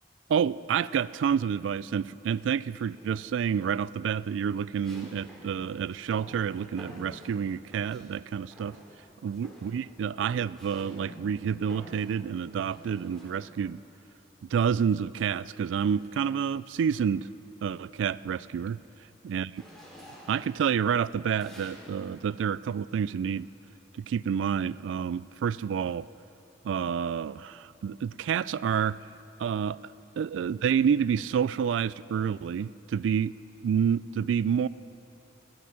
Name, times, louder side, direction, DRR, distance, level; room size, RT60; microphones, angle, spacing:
voice 1, 0.3-8.8 9.2-13.8 14.5-17.3 17.6-18.8 19.2-19.6 20.3-23.5 23.9-26.1 26.6-29.0 29.4-29.8 30.2-33.3 33.6-34.7, right 7 dB, 85° right, 19 dB, 0.3 m, -28 dB
sound 1, 3.0-3.5 4.8-8.2 8.5-9.1 9.3-13.8 14.9-16.3 16.8-17.1 17.4-22.2, equal, 5° left, 2.7 m, -51 dB
22.0 x 9.6 x 5.9 m, 3.0 s
head